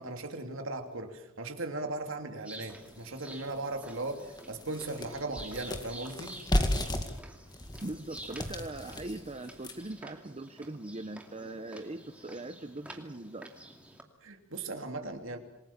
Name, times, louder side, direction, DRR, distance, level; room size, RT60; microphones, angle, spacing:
voice 1, 0.0-6.3 14.2-15.4, right 2 dB, 60° right, 5 dB, 3.0 m, -38 dB
sound 1, 2.4-14.0, right 1 dB, 5° right, 2.5 m, -49 dB
sound 2, 2.9-3.0 3.5-3.6 3.9-10.0, left 1 dB, 20° left, 2.1 m, -34 dB
voice 2, 7.8-13.5, right 2 dB, 30° right, 9 dB, 0.8 m, -41 dB
27.5 x 21.0 x 7.3 m, 0.87 s
head